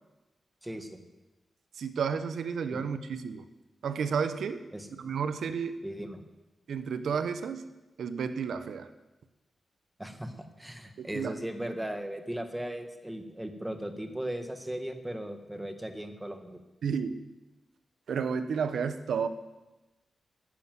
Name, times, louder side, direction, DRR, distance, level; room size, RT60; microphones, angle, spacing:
voice 1, 0.6-1.0 2.7-2.8 4.7-4.9 5.8-6.2 10.0-16.6, right 1 dB, 10° right, 7 dB, 1.5 m, -37 dB
voice 2, 1.8-3.4 3.8-4.7 5.0-5.8 6.7-7.6 8.0-8.9 11.0-11.3 16.8-17.2 18.1-19.3, right 6 dB, 85° right, 11 dB, 0.9 m, -31 dB
11.5 x 10.0 x 7.7 m, 1.1 s
wide cardioid pair, 95°, 0 cm